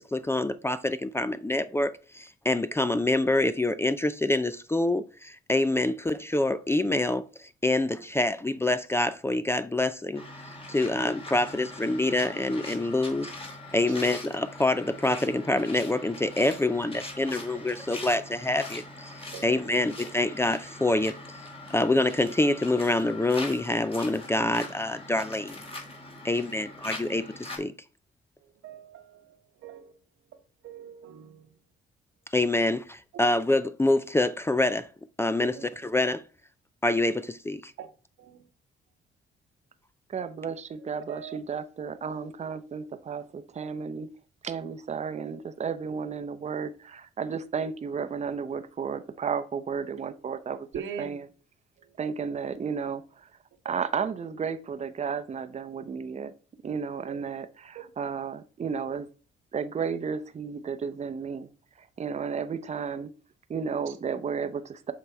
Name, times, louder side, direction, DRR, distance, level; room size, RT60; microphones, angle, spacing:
voice 1, 0.0-10.2 10.7-13.3 13.7-21.2 21.7-25.6 26.2-27.7 32.3-34.9 35.2-35.6 35.8-36.2 36.8-37.7, left 2 dB, 10° left, 0.4 m, -26 dB
sound 1, 10.1-27.6, left 2 dB, 30° left, 2.2 m, -42 dB
voice 2, 28.4-30.0 30.6-31.5 33.1-33.3 35.4-35.6 37.8-37.9 38.2-38.5 40.9-41.4 50.7-51.2 51.8-52.0 53.7-53.8 57.1-57.2 57.7-57.9 63.9-64.0, right 8 dB, 75° right, 1.2 m, -43 dB
voice 3, 40.1-44.1 44.4-50.7 51.0-51.3 52.0-53.3 53.6-56.3 56.6-59.1 59.5-61.5 61.8-63.1 63.5-64.9, right 6 dB, 35° right, 0.7 m, -33 dB
6.9 x 4.1 x 4.4 m
cardioid pair, 90°, 20 cm